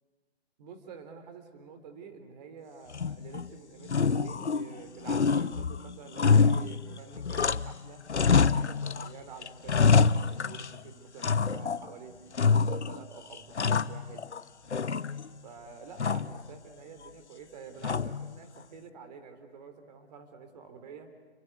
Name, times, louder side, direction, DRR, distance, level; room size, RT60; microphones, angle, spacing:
voice 1, 0.6-8.0 8.4-12.2 12.5-14.3 14.8-15.1 15.4-21.1, right 5 dB, 40° right, 8 dB, 3.8 m, -48 dB
sound 1, 2.9-3.5 3.8-4.8 5.1-7.8 8.1-9.1 9.4-10.8 11.2-11.9 12.3-13.0 13.3-14.4 14.7-15.4 16.0-16.4 17.8-18.3, left 5 dB, 90° left, 0.9 m, -26 dB
30.0 x 23.5 x 8.1 m, 1.4 s
figure-of-eight pair, 145°, 33 cm